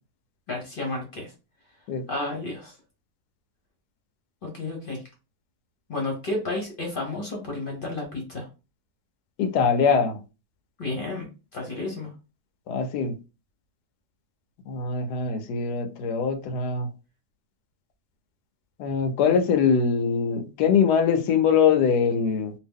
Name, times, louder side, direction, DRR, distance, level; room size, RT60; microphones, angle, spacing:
voice 1, 0.5-1.3 2.1-2.8 4.4-5.0 5.9-8.5 10.8-12.1, left 2 dB, 40° left, 0.9 m, -32 dB
voice 2, 9.4-10.2 12.7-13.2 14.7-16.9 18.8-22.5, left 6 dB, 85° left, 1.2 m, -22 dB
2.9 x 2.4 x 3.5 m
omnidirectional pair, 1.7 m